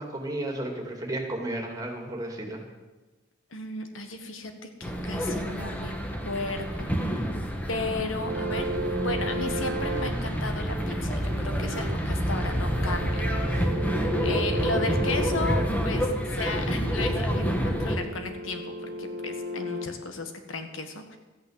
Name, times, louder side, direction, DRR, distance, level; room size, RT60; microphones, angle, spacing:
voice 1, 0.0-2.6, right 1 dB, 20° right, 1 dB, 2.4 m, -33 dB
voice 2, 3.5-4.5 4.8-5.9 6.2-6.9 7.7-8.7 9.0-13.1 13.5-13.6 14.2-21.2, left 3 dB, 80° left, 6 dB, 1.7 m, -34 dB
sound 1, 4.8-18.0, equal, 10° left, 1.4 m, -28 dB
sound 2, 8.2-19.9, right 1 dB, 80° right, 1.1 m, -35 dB
13.5 x 9.2 x 8.1 m, 1.2 s
head